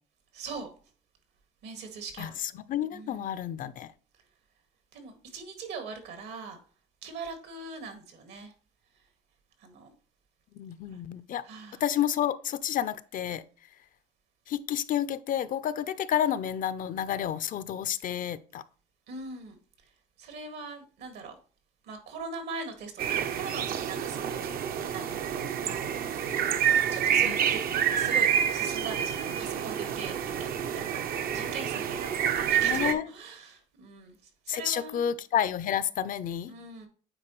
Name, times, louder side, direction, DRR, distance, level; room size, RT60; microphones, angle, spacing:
voice 1, 0.3-0.7 1.6-2.4 2.9-3.3 4.9-6.6 7.0-8.5 9.6-9.9 11.4-11.8 19.1-19.6 20.2-21.4 21.8-25.2 25.6-26.2 26.9-27.6 28.0-34.2 34.5-35.1 36.5-36.9, right 4 dB, 80° right, 1.9 m, -41 dB
voice 2, 2.2-3.9 10.5-11.4 11.8-13.4 14.5-18.6 27.2-27.4 32.6-33.0 34.5-36.5, left 10 dB, 55° left, 0.5 m, -30 dB
sound 1, 23.0-32.9, right 8 dB, 60° right, 0.7 m, -28 dB
8.9 x 4.1 x 3.1 m
cardioid pair, 110°, 17 cm